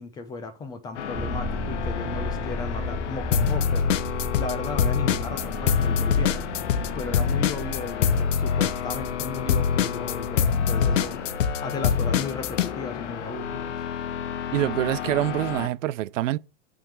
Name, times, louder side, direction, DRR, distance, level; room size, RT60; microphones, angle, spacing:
voice 1, 0.0-3.9 4.3-6.5 6.9-11.2 11.6-13.7, left 4 dB, 10° left, 0.5 m, -35 dB
sound 1, 0.9-15.7, left 8 dB, 70° left, 1.3 m, -33 dB
sound 2, 1.1-11.5, left 1 dB, 10° right, 4.0 m, -35 dB
sound 3, 3.3-4.5 4.8-12.7, left 7 dB, 85° left, 0.9 m, -23 dB
voice 2, 14.5-16.4, right 14 dB, 85° right, 0.6 m, -25 dB
9.1 x 3.7 x 6.5 m
supercardioid pair, 160°, 37 cm